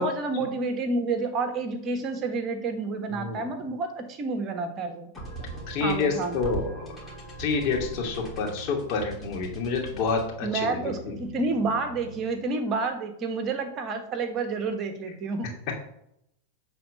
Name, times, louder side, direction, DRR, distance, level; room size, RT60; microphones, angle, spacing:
voice 1, 0.0-5.1 5.8-6.4 10.4-15.6, right 3 dB, 30° right, 7 dB, 1.3 m, -29 dB
voice 2, 3.1-3.5 5.7-6.9 7.4-11.2, left 4 dB, 40° left, 0 dB, 2.6 m, -28 dB
sound 1, 5.1-12.5, right 3 dB, 10° left, 3.0 m, -40 dB
10.5 x 4.2 x 6.6 m, 0.76 s
figure-of-eight pair, 90°, 0 cm